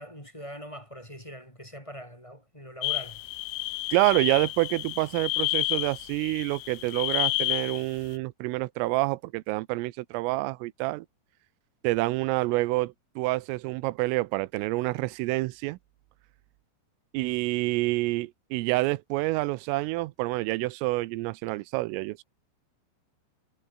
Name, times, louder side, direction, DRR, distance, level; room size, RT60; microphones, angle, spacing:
voice 1, 0.0-3.2, equal, 5° left, 7.6 m, -42 dB
sound 1, 2.8-7.8, left 19 dB, 85° left, 2.5 m, -30 dB
voice 2, 3.9-11.1 11.8-15.8 17.1-22.2, right 21 dB, 90° right, 3.4 m, -27 dB
omnidirectional pair, 5.8 m